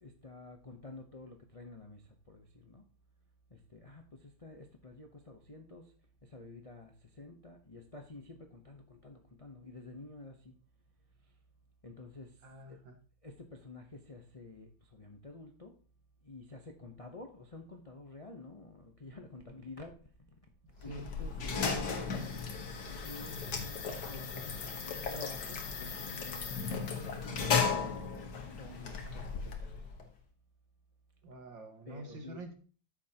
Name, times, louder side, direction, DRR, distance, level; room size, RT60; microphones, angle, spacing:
voice 1, 0.0-2.8 3.5-5.9 6.2-10.6 11.2-11.3 11.8-12.8 13.2-15.7 16.2-20.5 20.8-22.3 23.0-23.4 24.0-29.8 31.8-32.4, left 2 dB, 40° left, 3 dB, 0.4 m, -50 dB
voice 2, 12.4-12.9 20.9-21.0 31.2-32.5, right 1 dB, 70° right, 4 dB, 2.4 m, -46 dB
sound 1, 20.8-30.1, left 5 dB, 60° left, 1.8 m, -36 dB
13.0 x 7.2 x 2.9 m, 0.42 s
omnidirectional pair, 2.1 m